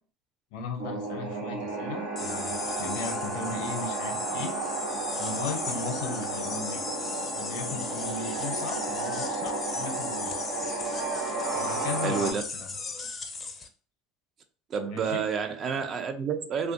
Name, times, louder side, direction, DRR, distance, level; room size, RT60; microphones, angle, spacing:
voice 1, 0.5-4.5 5.2-6.9 7.3-10.3 11.5-12.3 12.6-12.7 14.9-15.2, left 4 dB, 75° left, 0.6 m, -37 dB
sound 1, 0.8-12.3, right 3 dB, 85° right, 0.7 m, -33 dB
sound 2, 2.2-13.7, left 4 dB, 25° left, 0.4 m, -37 dB
voice 2, 12.0-12.4 14.7-16.7, right 6 dB, 40° right, 0.4 m, -29 dB
2.5 x 2.3 x 2.6 m
supercardioid pair, 100°, 0 cm